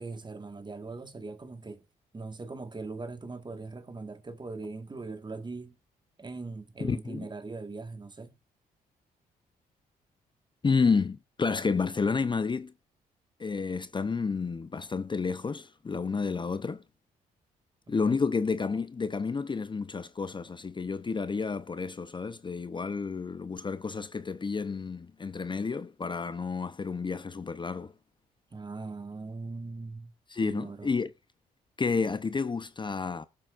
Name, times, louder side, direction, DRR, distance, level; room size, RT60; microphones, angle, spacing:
voice 1, 0.0-1.8 2.1-5.8 6.2-8.3 18.0-18.2 28.5-30.1 30.4-30.9, right 3 dB, 25° right, 1.6 m, -40 dB
voice 2, 6.8-7.3 10.6-12.7 13.4-16.8 17.9-27.9 30.3-31.1 31.8-33.3, left 5 dB, 30° left, 0.7 m, -30 dB
19.5 x 7.6 x 2.5 m
supercardioid pair, 65°, 17 cm